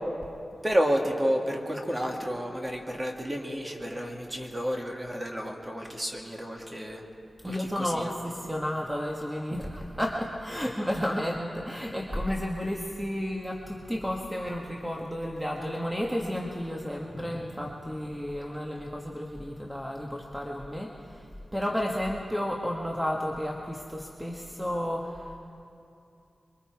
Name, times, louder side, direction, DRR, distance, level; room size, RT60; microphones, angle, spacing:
voice 1, 0.6-7.0 7.4-8.1, equal, 20° right, 1 dB, 2.2 m, -30 dB
voice 2, 7.4-21.2 21.5-25.4, equal, 5° right, -1 dB, 1.4 m, -32 dB
24.5 x 23.5 x 4.7 m, 2.7 s
wide cardioid pair, 115°, 0 cm